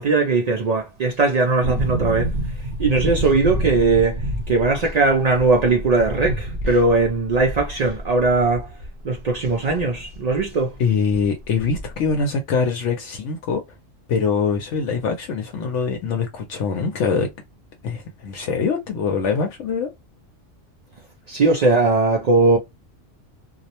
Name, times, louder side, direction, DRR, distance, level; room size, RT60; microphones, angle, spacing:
voice 1, 0.0-2.4 2.8-8.7 9.0-10.8 21.3-22.6, right 3 dB, 80° right, 0.3 m, -19 dB
sound 1, 1.6-10.5 10.7-10.8 11.1-12.1 12.4-12.5, right 1 dB, 65° right, 0.9 m, -29 dB
voice 2, 10.8-13.6 14.1-17.3 17.8-19.9, left 5 dB, 75° left, 0.9 m, -23 dB
2.3 x 2.0 x 2.8 m
omnidirectional pair, 1.3 m